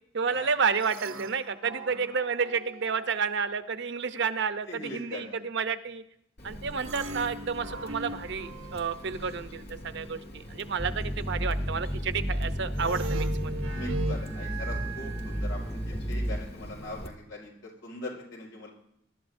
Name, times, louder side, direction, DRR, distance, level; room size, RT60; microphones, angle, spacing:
voice 1, 0.1-6.0 6.4-10.2 10.5-13.5, right 5 dB, 60° right, 11 dB, 0.7 m, -30 dB
sound 1, 0.8-3.4 6.7-9.8 12.7-15.9, right 2 dB, 85° right, 1.0 m, -39 dB
voice 2, 4.6-5.4 13.7-18.7, left 1 dB, 90° left, -1 dB, 5.1 m, -41 dB
Water tap faucet, 6.4-17.1, equal, 55° left, 1.6 m, -44 dB
sound 2, 10.8-16.4, equal, 5° right, 0.6 m, -32 dB
23.5 x 12.0 x 2.7 m, 0.73 s
head